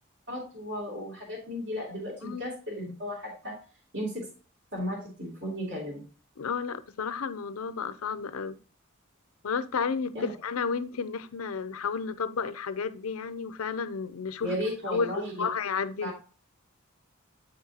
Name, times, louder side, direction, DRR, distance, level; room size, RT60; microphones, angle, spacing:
voice 1, 0.3-3.6 3.9-4.3 4.7-6.0 10.1-10.3 14.4-15.5 16.0-16.1, equal, 60° right, -7 dB, 3.1 m, -35 dB
voice 2, 6.4-8.6 9.4-14.5 14.9-16.1, left 5 dB, 85° left, 14 dB, 0.6 m, -32 dB
8.0 x 5.8 x 2.9 m, 0.37 s
head